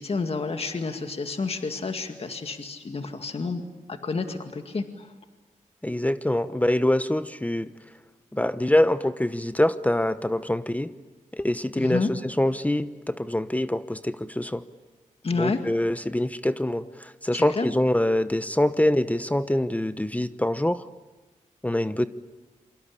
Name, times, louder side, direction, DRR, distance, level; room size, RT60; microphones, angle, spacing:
voice 1, 0.0-3.6 3.9-5.1 11.8-12.1 15.2-15.6 17.3-17.7, left 4 dB, 45° left, 6 dB, 2.1 m, -30 dB
voice 2, 5.8-7.7 8.3-10.9 11.3-14.6 15.4-20.8 21.6-22.1, left 1 dB, 10° left, 12 dB, 1.0 m, -24 dB
27.5 x 24.5 x 8.6 m, 1.2 s
cardioid pair, 60°, 14 cm